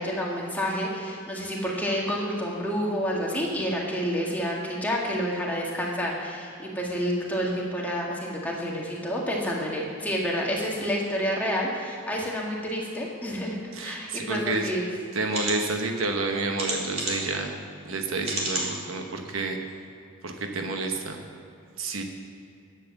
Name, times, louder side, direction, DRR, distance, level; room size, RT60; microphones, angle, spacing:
voice 1, 0.0-14.9, equal, 10° left, -3 dB, 1.8 m, -29 dB
voice 2, 13.7-14.7 15.1-17.5 17.8-19.6 20.2-21.2 21.8-22.0, right 3 dB, 85° right, 4 dB, 1.1 m, -29 dB
sound 1, 14.5-14.6 15.3-15.6 16.6-17.3 18.2-18.7 19.3-19.4 19.7-19.8, right 2 dB, 30° right, 2.3 m, -30 dB
10.5 x 7.7 x 7.1 m, 2.6 s
head